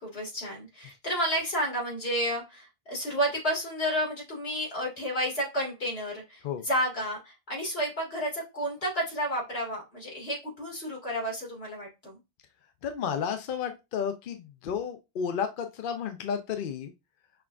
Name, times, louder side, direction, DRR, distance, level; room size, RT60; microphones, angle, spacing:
voice 1, 0.0-12.2, equal, 85° left, -3 dB, 2.0 m, -31 dB
voice 2, 12.8-16.9, left 7 dB, 65° left, 6 dB, 0.7 m, -32 dB
5.7 x 2.4 x 2.3 m, 0.25 s
omnidirectional pair, 1.0 m